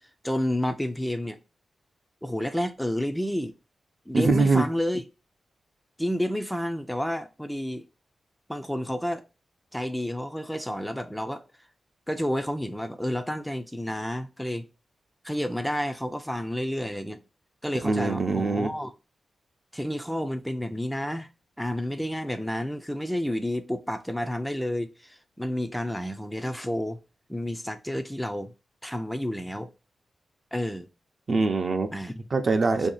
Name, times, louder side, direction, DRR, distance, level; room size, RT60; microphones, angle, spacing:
voice 1, 0.2-1.4 2.2-3.5 4.1-5.0 6.0-7.9 8.5-9.2 9.7-11.4 12.1-14.6 15.2-17.2 17.6-18.9 19.7-21.3 21.6-27.0 27.3-28.5 28.8-29.7 30.5-30.9 31.9-32.3 32.8-32.9, equal, 5° left, 0.3 m, -30 dB
voice 2, 4.1-4.6 17.8-18.7 31.3-31.9 32.3-32.9, right 3 dB, 50° right, 0.6 m, -23 dB
2.7 x 2.7 x 3.9 m
cardioid pair, 85°, 0 cm